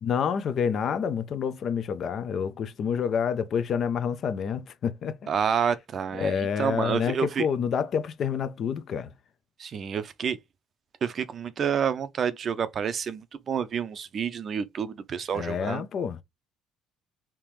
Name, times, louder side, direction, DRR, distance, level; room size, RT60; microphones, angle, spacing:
voice 1, 0.0-5.3 6.1-9.1 15.3-16.2, left 7 dB, 50° left, 0.5 m, -28 dB
voice 2, 5.3-7.5 9.6-10.4 11.0-15.8, right 7 dB, 45° right, 0.5 m, -29 dB
3.6 x 2.8 x 3.1 m
supercardioid pair, 95°, 0 cm